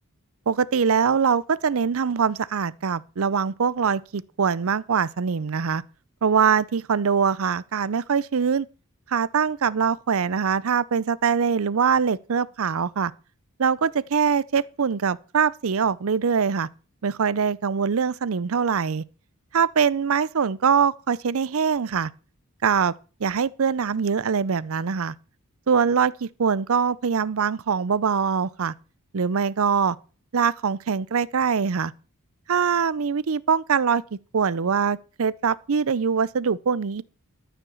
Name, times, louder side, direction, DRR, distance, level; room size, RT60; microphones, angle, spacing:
voice 1, 0.5-5.8 6.2-8.7 9.1-13.1 13.6-16.7 17.0-19.0 19.5-22.1 22.6-22.9 23.2-25.1 25.7-28.7 29.1-30.0 30.3-31.9 32.5-37.0, right 6 dB, 65° right, 0.5 m, -23 dB
13.0 x 5.8 x 7.0 m
head